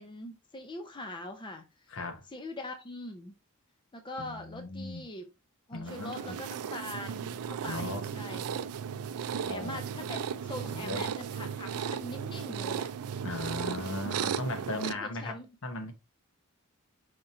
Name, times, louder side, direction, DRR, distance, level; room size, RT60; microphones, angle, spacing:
voice 1, 0.0-1.9 2.3-3.4 3.9-5.3 5.7-8.4 8.9-12.9 13.7-14.0 14.8-15.5, left 2 dB, 20° left, 0.6 m, -42 dB
voice 2, 1.9-2.2 4.2-5.1 5.7-6.4 7.6-8.3 9.4-9.8 10.7-11.1 13.2-15.3 15.6-15.9, left 2 dB, 65° left, 1.1 m, -37 dB
sound 1, 5.9-14.9, right 7 dB, 85° right, 0.4 m, -36 dB
5.0 x 2.9 x 3.7 m
head